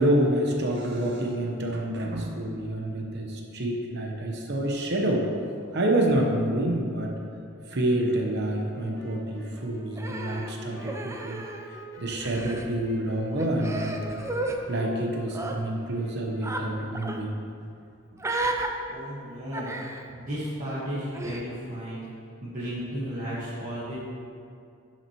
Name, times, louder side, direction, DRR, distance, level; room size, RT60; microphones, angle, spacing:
voice 1, 0.0-5.3 5.7-7.1 7.7-11.5 12.0-14.2 14.7-17.4, right 1 dB, 55° right, 0 dB, 0.9 m, -27 dB
sound 1, 8.4-17.5, left 1 dB, 15° left, 1.5 m, -47 dB
Human voice, 10.0-11.8 12.1-12.7 13.4-14.6 15.3-15.6 16.4-16.6 16.9-17.2 18.2-18.7 19.5-20.1 21.1-21.4, right 2 dB, 15° right, 0.5 m, -33 dB
voice 2, 18.9-19.7 20.1-22.1 22.4-24.0, equal, 40° right, -10 dB, 1.5 m, -34 dB
10.5 x 6.0 x 3.0 m, 2.4 s
head